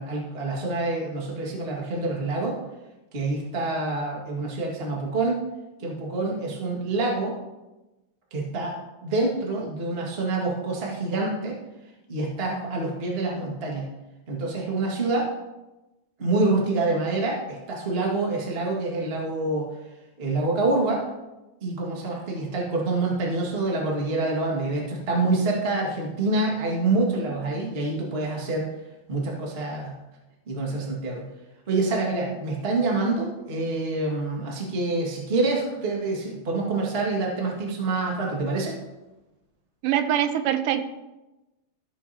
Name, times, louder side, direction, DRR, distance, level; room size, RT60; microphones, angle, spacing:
voice 1, 0.0-2.6 3.1-5.4 5.8-7.3 8.3-8.8 9.0-11.5 12.1-13.9 14.3-15.3 16.2-19.7 20.2-21.0 21.6-28.7 29.1-29.9 30.5-31.2 31.7-38.7, right 2 dB, 30° right, -2 dB, 1.1 m, -26 dB
voice 2, 39.8-40.8, right 10 dB, 80° right, 9 dB, 2.1 m, -23 dB
14.0 x 6.9 x 2.8 m, 1.0 s
omnidirectional pair, 4.0 m